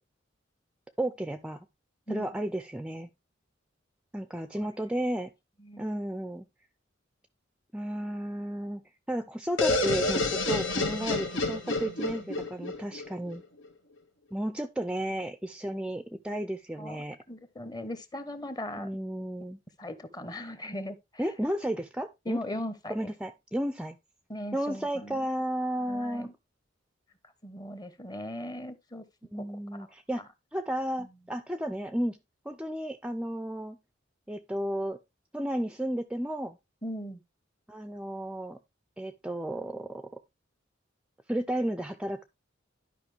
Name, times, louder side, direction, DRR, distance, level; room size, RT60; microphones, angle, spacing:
voice 1, 1.0-1.7 2.1-3.1 4.1-5.3 5.8-6.5 7.7-8.8 9.1-13.4 14.3-17.2 18.8-19.6 21.2-22.4 22.9-24.0 24.5-26.3 29.3-30.2 30.5-32.2 32.5-33.8 34.3-35.0 35.3-36.6 37.7-38.6 39.0-40.2 41.3-42.2, right 1 dB, 5° right, 0.4 m, -33 dB
sound 1, 9.6-13.4, left 3 dB, 80° left, 1.6 m, -29 dB
voice 2, 16.8-18.9 19.8-21.2 22.2-23.1 24.3-25.2 25.9-26.3 27.4-29.1 29.4-29.9 31.0-31.1 36.8-37.2, left 1 dB, 20° left, 1.0 m, -39 dB
11.5 x 5.3 x 3.3 m
head